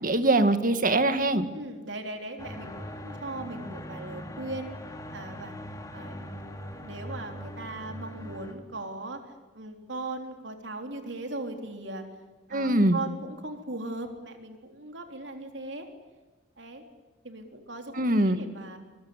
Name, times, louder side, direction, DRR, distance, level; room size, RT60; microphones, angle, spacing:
voice 1, 0.0-1.5 12.5-13.0 17.9-18.4, right 2 dB, 50° right, 10 dB, 2.0 m, -23 dB
voice 2, 1.5-4.8 5.1-5.5 5.9-12.0 12.5-15.9 16.6-16.8 17.2-18.8, right 2 dB, 75° right, 5 dB, 3.7 m, -39 dB
sound 1, 2.4-8.5, equal, 20° left, 3.0 m, -41 dB
24.5 x 23.0 x 9.8 m, 1.2 s
head